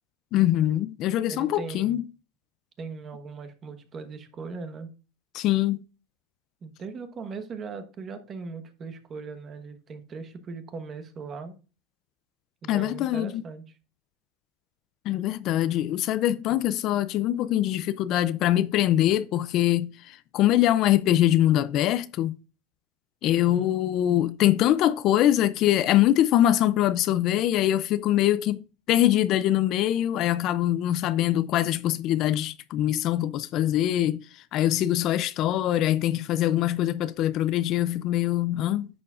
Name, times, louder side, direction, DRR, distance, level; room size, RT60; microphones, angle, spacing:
voice 1, 0.3-2.0 5.3-5.8 12.7-13.4 15.1-22.4 23.2-38.9, left 13 dB, 45° left, 0.4 m, -23 dB
voice 2, 1.3-2.0 2.8-4.9 6.6-11.6 12.6-13.8 16.3-16.6 19.0-19.1 23.3-23.7, right 4 dB, 25° right, 1.1 m, -39 dB
10.5 x 7.0 x 2.4 m
supercardioid pair, 145°, 0 cm